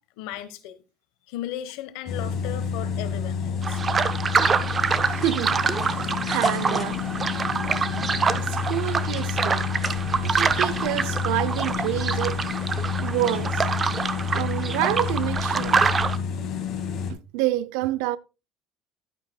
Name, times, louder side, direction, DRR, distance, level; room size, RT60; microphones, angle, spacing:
voice 1, 0.2-0.8 1.3-3.8, left 12 dB, 85° left, 1.1 m, -36 dB
sound 1, 2.1-17.1, left 6 dB, 55° left, 1.9 m, -29 dB
sound 2, 3.6-16.2, right 5 dB, 30° right, 0.6 m, -26 dB
voice 2, 5.1-7.0 7.9-9.7 10.2-12.4 13.0-13.7 14.3-15.8 17.1-18.2, right 15 dB, 85° right, 0.4 m, -28 dB
sound 3, 5.2-7.4 8.0-8.9 9.2-9.3 9.8-10.0, left 3 dB, 10° left, 2.7 m, -42 dB
11.0 x 9.5 x 2.2 m
cardioid pair, 125°, 0 cm